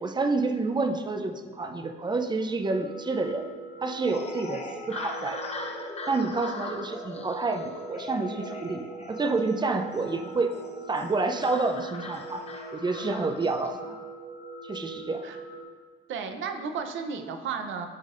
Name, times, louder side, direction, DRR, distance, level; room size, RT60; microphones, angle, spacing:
voice 1, 0.0-3.5 3.8-5.4 6.1-10.5 10.9-12.4 12.7-14.0 14.6-15.2, right 3 dB, 20° right, 7 dB, 0.6 m, -29 dB
sound 1, 2.6-15.6, right 3 dB, 40° right, 1.6 m, -42 dB
sound 2, 4.0-13.7, left 3 dB, 30° left, 0.8 m, -40 dB
voice 2, 16.1-17.9, right 6 dB, 75° right, 6 dB, 0.7 m, -33 dB
11.5 x 4.0 x 2.5 m, 1.5 s
cardioid pair, 90°, 20 cm